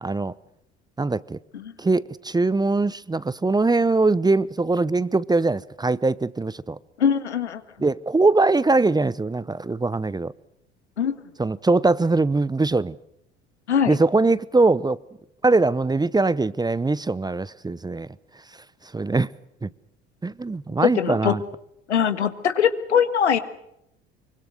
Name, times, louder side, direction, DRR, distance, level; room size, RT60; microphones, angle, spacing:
voice 1, 0.0-0.3 1.0-1.4 1.8-6.8 7.8-10.3 11.4-13.0 13.9-15.0 15.4-18.1 18.9-19.3 19.6-19.7 20.2-21.4, right 3 dB, 10° right, 0.8 m, -22 dB
voice 2, 7.0-7.6 11.0-11.2 13.7-14.0 20.8-21.4 21.9-23.4, left 8 dB, 85° left, 1.7 m, -21 dB
25.0 x 24.0 x 6.5 m
hypercardioid pair, 65°, 33 cm